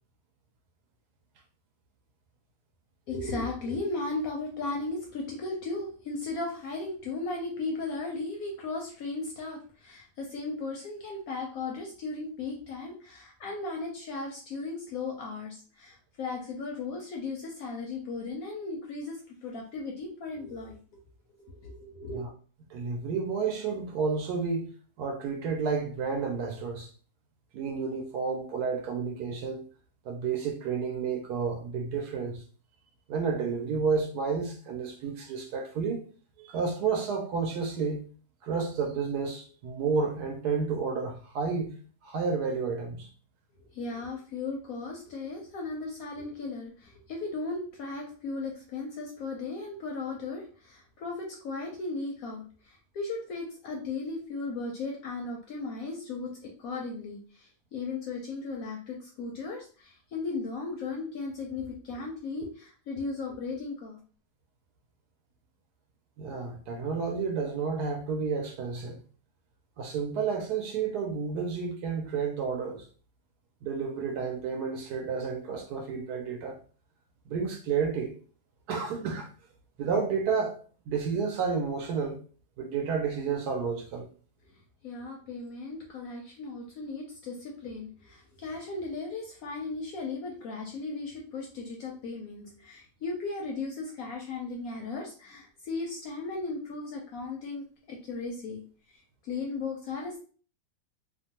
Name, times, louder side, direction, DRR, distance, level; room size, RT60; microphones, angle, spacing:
voice 1, 3.1-20.8 21.5-22.2 43.7-64.0 84.8-98.6 98.9-100.2, left 3 dB, 70° left, 0.9 m, -36 dB
voice 2, 22.7-24.7 25.0-26.9 27.5-29.6 30.0-32.4 33.1-36.0 36.4-38.0 38.4-41.7 42.0-43.1 66.2-69.0 69.8-72.9 73.6-76.6 77.3-78.1 78.7-79.3 79.8-80.6 80.9-82.2 82.6-84.1, right 5 dB, 70° right, 1.0 m, -31 dB
2.9 x 2.1 x 2.8 m
omnidirectional pair, 1.9 m